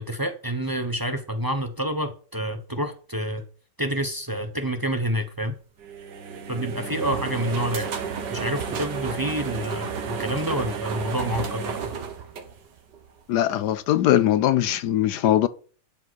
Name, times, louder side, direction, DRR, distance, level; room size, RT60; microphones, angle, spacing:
voice 1, 0.0-3.4 3.8-5.5 6.5-7.9 8.3-11.9, equal, 20° right, 0.5 m, -28 dB
sound 1, 5.8-13.1, right 6 dB, 75° right, 1.9 m, -32 dB
voice 2, 13.3-15.5, left 12 dB, 75° left, 1.2 m, -21 dB
12.0 x 5.0 x 6.2 m
omnidirectional pair, 1.8 m